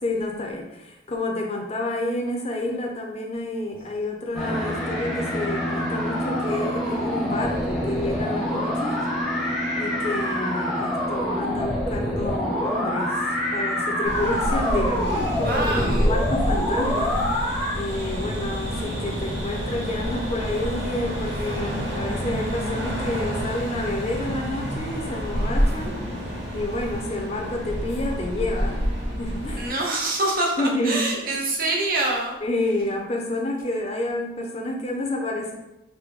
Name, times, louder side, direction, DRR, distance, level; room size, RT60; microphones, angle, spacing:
voice 1, 0.0-9.0 9.8-17.2 17.7-25.9 26.5-28.8 29.2-29.7 30.6-31.4 32.4-35.5, left 1 dB, 35° left, 1 dB, 0.6 m, -29 dB
sound 1, 4.3-17.8, left 1 dB, ahead, 0.8 m, -26 dB
sound 2, 14.0-29.7, equal, 80° right, 1.2 m, -28 dB
sound 3, 15.2-24.5, equal, 85° left, 0.7 m, -39 dB
voice 2, 15.4-16.1 29.6-32.4, right 2 dB, 50° right, -1 dB, 0.8 m, -25 dB
4.6 x 2.2 x 3.6 m, 0.96 s
head